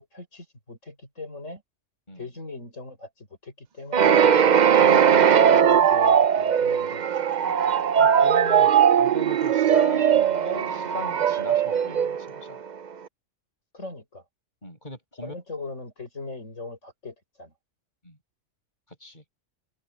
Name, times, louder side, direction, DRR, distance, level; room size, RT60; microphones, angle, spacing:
voice 1, 0.0-1.6 2.1-4.2 4.8-7.0 13.7-14.2 15.2-17.5, left 3 dB, 85° left, 6.9 m, -39 dB
sound 1, 3.9-12.7, right 8 dB, 45° right, 0.6 m, -19 dB
voice 2, 7.4-12.6 14.6-15.3 18.0-18.2 18.9-19.2, left 1 dB, 40° left, 8.3 m, -40 dB
omnidirectional pair, 1.3 m